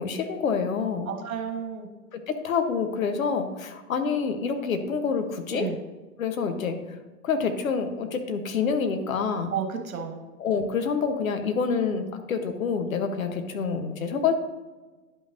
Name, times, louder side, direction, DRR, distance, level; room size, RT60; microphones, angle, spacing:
voice 1, 0.0-1.1 2.1-5.7 6.2-6.8 7.2-9.5 10.4-14.3, left 5 dB, 65° left, 7 dB, 1.1 m, -27 dB
voice 2, 1.1-1.9 5.5-5.8 9.5-10.2, right 7 dB, 65° right, 3 dB, 1.6 m, -31 dB
11.0 x 5.5 x 2.6 m, 1.2 s
figure-of-eight pair, 105°, 44 cm